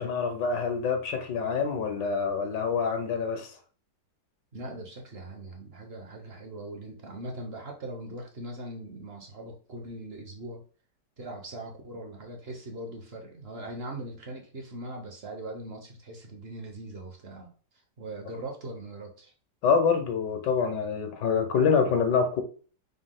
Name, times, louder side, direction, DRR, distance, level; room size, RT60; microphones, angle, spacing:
voice 1, 0.0-3.5 19.6-22.4, left 5 dB, 75° left, 1.5 m, -26 dB
voice 2, 4.5-10.6 11.2-17.5 18.0-19.3, right 1 dB, 45° right, 0.9 m, -40 dB
5.2 x 2.3 x 3.7 m
omnidirectional pair, 1.9 m